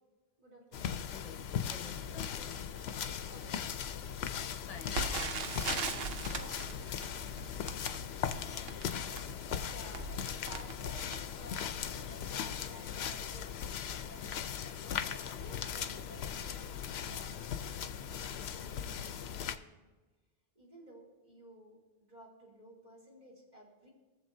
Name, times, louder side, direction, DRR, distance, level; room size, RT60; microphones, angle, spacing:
voice 1, 0.4-1.0 3.3-3.9 6.3-7.1 8.2-8.6 9.4-10.1 10.4-14.0 14.3-19.8 20.5-23.9, equal, 45° right, -4 dB, 2.9 m, -55 dB
sound 1, 0.7-19.5, left 8 dB, 80° left, 0.8 m, -38 dB
voice 2, 1.1-2.8 4.6-5.5, left 6 dB, 45° left, 9 dB, 0.6 m, -51 dB
Crackle, 4.9-11.9 12.5-12.6 12.9-13.1 13.7-13.9 14.2-14.3, right 4 dB, 70° right, 1.0 m, -40 dB
sound 2, 9.1-9.2 10.1-10.2 11.1-11.3 12.1-12.2 13.1-13.3 14.1-14.2 15.1-15.3 16.1-16.2 17.1-17.3, right 3 dB, 25° right, 2.4 m, -54 dB
22.0 x 7.4 x 2.7 m, 1.2 s
omnidirectional pair, 1.1 m